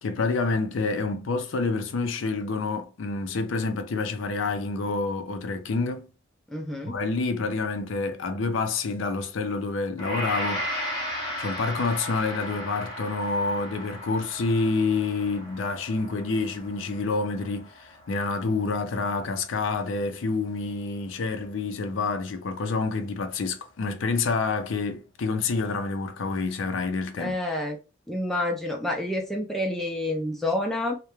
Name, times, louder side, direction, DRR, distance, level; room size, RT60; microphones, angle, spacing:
voice 1, 0.0-6.1 6.8-10.7 11.4-27.3, left 3 dB, 75° left, 0.4 m, -28 dB
voice 2, 6.5-6.9 27.2-27.8 28.1-31.0, left 1 dB, ahead, 0.3 m, -28 dB
Gong, 10.0-19.2, equal, 20° left, 0.8 m, -36 dB
2.3 x 2.1 x 2.9 m
head